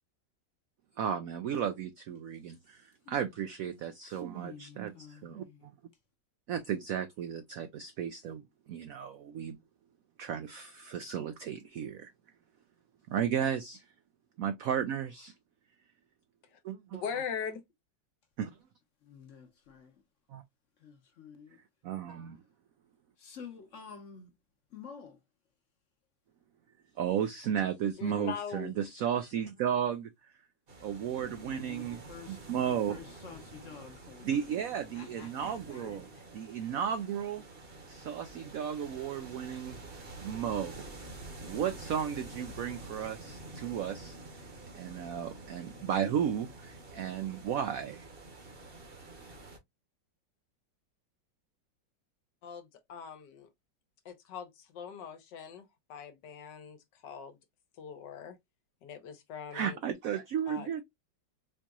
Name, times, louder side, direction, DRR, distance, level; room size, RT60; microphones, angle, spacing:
voice 1, 1.0-5.7 6.5-8.4 8.7-9.6 10.2-12.1 13.1-13.8 14.4-15.3 16.7-17.0 18.4-18.5 20.3-20.4 21.8-22.4 27.0-30.1 30.8-33.0 34.2-36.1 36.3-37.4 37.9-39.8 40.2-40.9 41.4-44.5 44.7-48.1 59.5-60.8, right 8 dB, 85° right, 0.7 m, -34 dB
voice 2, 3.0-3.4 3.7-5.7 19.1-20.0 20.8-21.6 23.2-24.3 24.7-25.2 30.9-34.5 34.9-36.0, left 6 dB, 55° left, 1.0 m, -51 dB
voice 3, 17.0-17.6 28.0-28.7 35.4-35.5 35.8-36.0 52.4-53.5 54.0-56.8 57.0-57.4 57.8-58.4 58.8-59.8 60.5-60.7, left 7 dB, 70° left, 1.4 m, -41 dB
sound 1, 30.7-49.6, right 2 dB, 40° right, 1.0 m, -48 dB
4.5 x 2.9 x 2.4 m
omnidirectional pair, 2.0 m